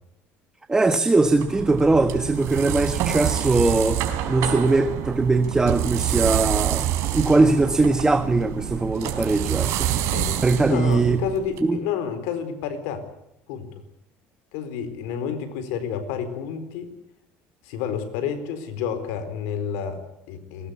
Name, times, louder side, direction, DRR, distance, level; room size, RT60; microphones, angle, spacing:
voice 1, 0.7-6.9 7.1-9.9 10.4-11.2 11.6-11.8, right 3 dB, 15° right, 9 dB, 1.2 m, -21 dB
sound 1, 1.3-11.6, right 11 dB, 65° right, 4.2 m, -27 dB
voice 2, 10.7-13.0 13.5-13.7 14.5-16.9 17.6-20.7, left 7 dB, 90° left, 10 dB, 4.3 m, -30 dB
21.5 x 20.0 x 8.3 m, 0.80 s
cardioid pair, 125°, 5 cm